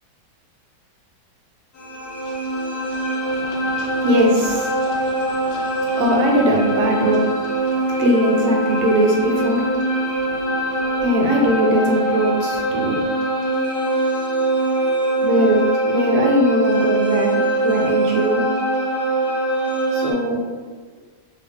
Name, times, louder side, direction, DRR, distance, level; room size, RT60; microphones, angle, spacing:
sound 1, 1.8-20.1, right 2 dB, 70° left, 1.2 m, -22 dB
voice 1, 3.3-4.9 5.8-9.7 10.2-10.3 10.7-10.8 11.0-13.1 15.2-18.4 19.9-20.4, equal, 75° right, 0 dB, 1.3 m, -20 dB
3.1 x 2.9 x 3.3 m, 1.5 s
omnidirectional pair, 1.9 m